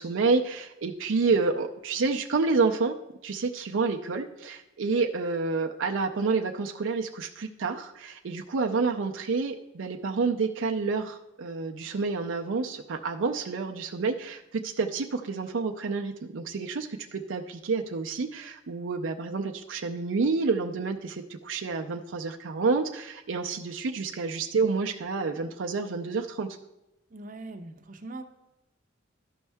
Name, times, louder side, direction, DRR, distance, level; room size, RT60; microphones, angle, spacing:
voice 1, 0.0-3.0 3.2-26.5, right 4 dB, 80° right, 3 dB, 0.5 m, -29 dB
voice 2, 27.1-28.2, right 2 dB, 40° right, 6 dB, 0.7 m, -41 dB
13.0 x 5.4 x 3.4 m, 0.97 s
head